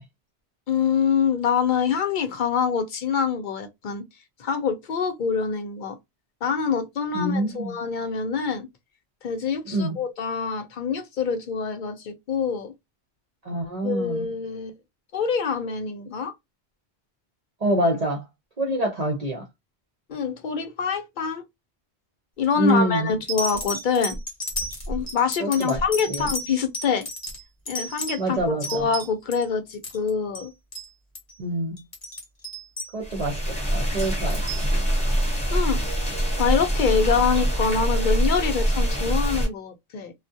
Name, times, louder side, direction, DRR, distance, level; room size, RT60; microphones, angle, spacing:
voice 1, 0.7-4.0 4.4-6.0 6.4-8.7 9.2-12.7 13.8-14.8 15.1-16.3 20.1-21.4 22.4-24.2 24.9-27.1 27.7-30.5 35.5-35.8 36.1-40.1, left 6 dB, 55° left, 0.6 m, -25 dB
voice 2, 7.1-7.7 9.6-10.0 13.4-14.3 17.6-18.2 18.6-19.4 22.6-23.1 25.4-25.8 26.1-26.3 28.2-28.9 31.4-31.8 32.9-34.7, right 1 dB, 45° right, 0.6 m, -26 dB
sound 1, 22.4-22.7 23.3-29.4 29.7-30.1 30.3-30.5 30.7-30.9 31.1-31.4 31.8-33.4 34.0-34.7 35.5-35.6, equal, 35° left, 0.9 m, -32 dB
sound 2, 33.0-39.5, right 1 dB, 5° left, 0.9 m, -24 dB
2.3 x 2.1 x 2.6 m
omnidirectional pair, 1.1 m